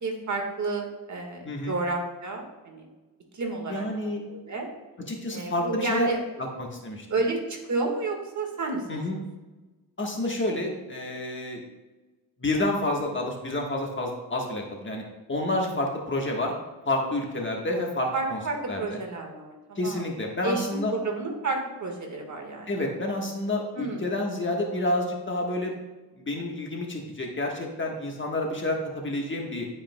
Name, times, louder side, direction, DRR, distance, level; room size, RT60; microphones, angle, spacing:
voice 1, 0.0-2.9 3.3-4.7 5.3-6.2 7.1-8.9 9.1-9.2 18.1-20.1 20.4-22.8 23.7-24.1, right 3 dB, 45° right, 2 dB, 1.6 m, -31 dB
voice 2, 1.4-1.8 3.7-4.2 5.1-6.1 6.4-7.1 8.9-9.2 10.0-11.6 12.4-15.0 15.3-16.5 16.8-18.4 18.7-19.0 19.8-20.9 22.7-25.7 26.2-29.7, left 1 dB, 30° left, 0 dB, 1.3 m, -29 dB
11.5 x 5.0 x 2.2 m, 1.2 s
cardioid pair, 80°, 40 cm